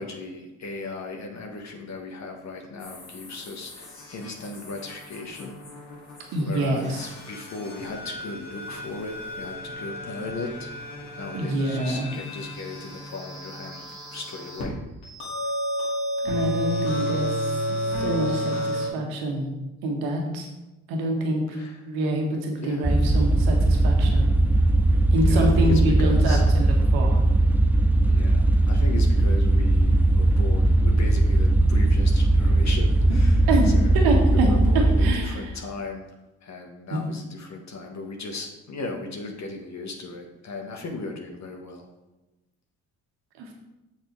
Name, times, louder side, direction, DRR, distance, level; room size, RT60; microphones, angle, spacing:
voice 1, 0.0-5.6 6.4-10.7 11.2-14.8 21.5-21.8 22.6-22.9 25.2-26.4 28.1-34.0 34.3-36.0 36.4-41.8, left 3 dB, 45° left, 2 dB, 1.4 m, -37 dB
sound 1, 2.8-14.6 15.0-18.9, equal, 80° left, 2.3 m, -32 dB
voice 2, 6.3-7.0 11.3-12.1 16.2-17.6 18.0-19.5 19.8-20.5 20.9-21.4 21.8-24.3 25.1-27.2 33.5-34.5 35.0-35.4 36.9-37.0 43.4-43.5, right 1 dB, 70° right, 1 dB, 1.6 m, -26 dB
sound 2, 22.8-35.1, right 2 dB, 5° right, 0.4 m, -19 dB
7.4 x 5.9 x 4.6 m, 1.0 s
hypercardioid pair, 45°, 37 cm